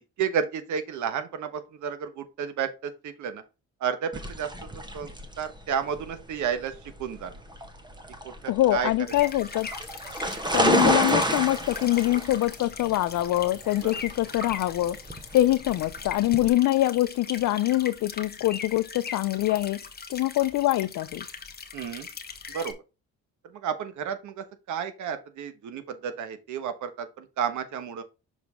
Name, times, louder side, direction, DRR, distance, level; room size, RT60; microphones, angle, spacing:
voice 1, 0.2-3.4 3.8-7.4 8.2-8.9 10.2-10.4 13.8-14.0 21.7-22.1 22.5-22.7 23.4-28.0, right 7 dB, 75° right, 1.2 m, -32 dB
sound 1, 4.1-16.5, right 1 dB, 15° right, 1.2 m, -30 dB
voice 2, 8.5-9.7 10.5-15.0 15.3-19.8 20.1-21.3, left 15 dB, 75° left, 0.5 m, -24 dB
sound 2, 9.1-22.7, left 5 dB, 30° left, 1.2 m, -40 dB
6.3 x 5.0 x 3.6 m
cardioid pair, 90°, 30 cm